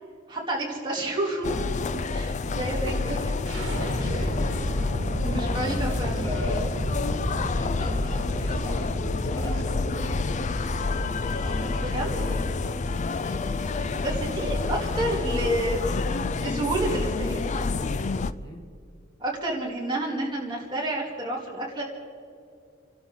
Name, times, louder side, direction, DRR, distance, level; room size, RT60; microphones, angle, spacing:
voice 1, 0.3-1.5 2.1-3.4 3.7-4.1 5.2-6.3 11.8-12.2 14.0-15.9 16.4-17.4 19.2-21.8, right 1 dB, 25° right, -3 dB, 3.1 m, -30 dB
sound 1, 1.4-18.3, left 3 dB, 35° left, 0.4 m, -28 dB
sound 2, 3.5-15.3, equal, 70° right, 1.9 m, -33 dB
voice 2, 3.9-4.5 5.2-7.0 7.6-10.2 11.3-12.5 18.4-18.7, left 1 dB, 20° left, -1 dB, 2.0 m, -38 dB
29.5 x 12.5 x 3.9 m, 2.4 s
head